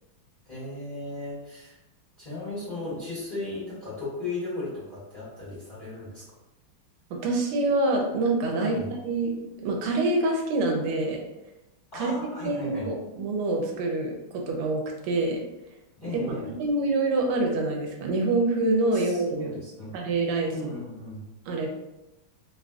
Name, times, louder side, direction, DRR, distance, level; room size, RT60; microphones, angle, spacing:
voice 1, 0.4-1.8 2.2-6.2 8.6-8.8 11.9-12.9 16.0-16.5 18.9-20.0 20.5-21.2, left 2 dB, 25° left, -12 dB, 1.3 m, -36 dB
voice 2, 7.1-9.3 9.6-11.2 11.9-12.2 12.4-15.4 16.1-19.6 19.9-20.7 21.5-21.7, right 2 dB, 85° right, 1 dB, 1.5 m, -26 dB
3.5 x 2.5 x 2.3 m, 0.96 s
omnidirectional pair, 2.4 m